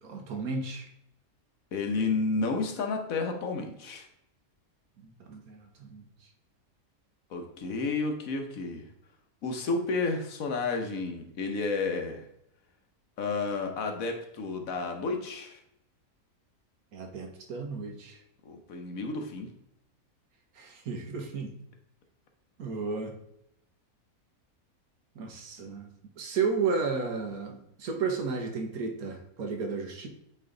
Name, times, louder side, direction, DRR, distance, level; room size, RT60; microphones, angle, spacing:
voice 1, 0.0-0.9 5.0-6.0 16.9-18.2 20.6-21.5 22.6-23.2 25.1-25.9 26.2-30.1, right 4 dB, 85° right, 4 dB, 1.5 m, -33 dB
voice 2, 1.7-4.1 7.3-8.9 9.4-12.3 13.2-15.6 18.4-19.5, left 3 dB, 70° left, 4 dB, 1.3 m, -31 dB
7.8 x 3.3 x 3.8 m, 0.78 s
omnidirectional pair, 1.5 m